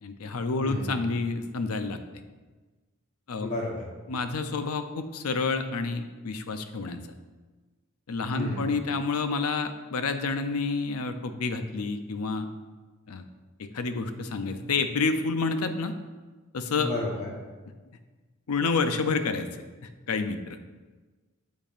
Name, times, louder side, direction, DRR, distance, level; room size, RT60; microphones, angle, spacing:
voice 1, 0.0-2.0 3.3-3.5 4.1-7.0 8.1-12.5 13.1-13.2 13.6-15.9 16.5-16.9 18.5-19.5 20.1-20.6, left 4 dB, 80° left, 8 dB, 0.6 m, -29 dB
voice 2, 0.6-0.9 3.4-3.8 8.3-8.7 16.8-17.3, left 1 dB, 35° left, -3 dB, 1.0 m, -31 dB
8.9 x 7.3 x 2.5 m, 1.3 s
head